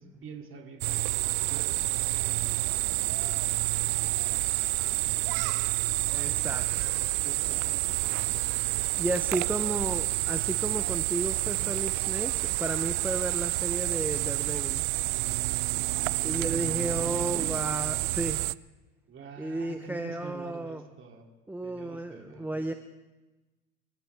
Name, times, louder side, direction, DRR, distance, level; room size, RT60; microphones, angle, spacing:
voice 1, 0.0-6.4 7.0-9.8 15.8-17.6 19.1-21.2 21.6-22.7, right 5 dB, 30° right, 2 dB, 2.7 m, -47 dB
sound 1, 0.8-18.5, right 24 dB, 65° right, 0.5 m, -29 dB
sound 2, 5.4-14.5, right 5 dB, 45° right, 5.6 m, -55 dB
voice 2, 6.1-6.9 9.0-14.8 16.2-18.4 19.4-20.8 21.5-22.7, right 2 dB, 5° right, 7 dB, 0.6 m, -33 dB
25.0 x 15.0 x 3.4 m, 1.1 s
hypercardioid pair, 95°, 39 cm